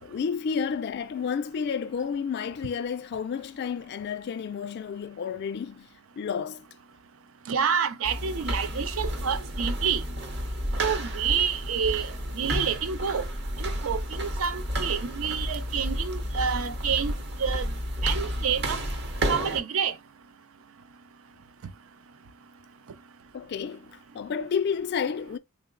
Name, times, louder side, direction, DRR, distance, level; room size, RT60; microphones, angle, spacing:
voice 1, 0.0-5.9 6.2-6.7 23.3-25.4, left 6 dB, 50° left, 0.3 m, -31 dB
voice 2, 7.5-10.0 10.8-12.1 12.3-13.2 13.6-17.1 17.4-17.7 18.0-18.8 19.3-19.9, right 7 dB, 65° right, 0.4 m, -28 dB
sound 1, 8.0-19.6, equal, 50° right, 0.8 m, -31 dB
3.7 x 2.0 x 3.7 m
head